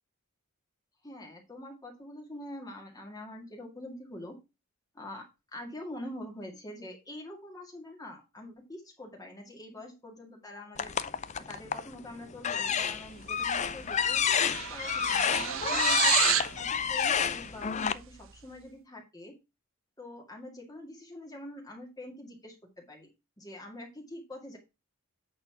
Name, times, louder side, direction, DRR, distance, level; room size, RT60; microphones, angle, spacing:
voice 1, 1.0-4.4 4.9-5.2 5.5-10.9 11.4-16.1 16.6-19.3 20.0-23.1 23.4-24.6, left 1 dB, 15° left, 1 dB, 2.0 m, -45 dB
sound 1, 10.8-11.9 12.4-17.9, left 7 dB, 30° left, 0.4 m, -29 dB
sound 2, 13.4-13.6 13.9-16.6, right 11 dB, 60° right, 0.5 m, -29 dB
8.5 x 4.3 x 5.8 m, 0.26 s
head